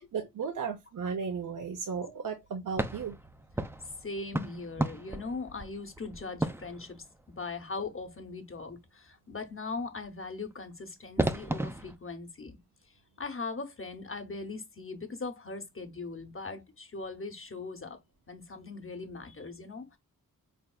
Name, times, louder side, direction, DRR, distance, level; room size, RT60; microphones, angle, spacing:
voice 1, 0.1-3.1, right 6 dB, 65° right, 0.7 m, -35 dB
sound 1, 2.7-7.5 10.5-10.6 11.2-12.0, right 1 dB, 5° right, 0.5 m, -34 dB
voice 2, 4.0-12.6 13.2-18.0 18.3-20.0, left 3 dB, 40° left, 0.9 m, -40 dB
4.0 x 3.5 x 2.2 m
cardioid pair, 55°, 34 cm